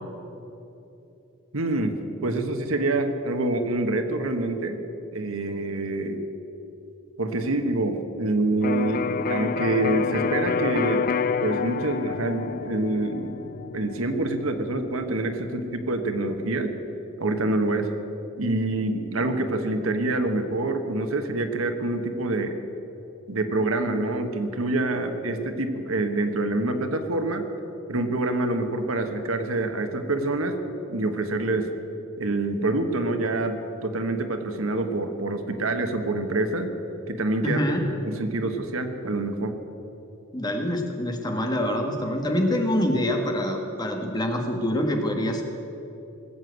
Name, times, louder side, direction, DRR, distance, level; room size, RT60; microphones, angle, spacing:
voice 1, 1.5-4.8 5.1-6.2 7.2-11.1 11.4-13.4 13.7-16.7 17.2-17.9 18.4-22.6 23.3-27.5 27.9-30.6 30.9-31.7 32.2-36.7 37.1-37.6 38.0-39.5, right 2 dB, 85° right, 7 dB, 1.3 m, -26 dB
Electric guitar, 8.6-16.4, left 6 dB, 45° left, 0.4 m, -29 dB
voice 2, 37.4-37.8 40.3-45.4, left 1 dB, 20° left, 3 dB, 1.6 m, -25 dB
19.5 x 7.9 x 8.1 m, 3.0 s
head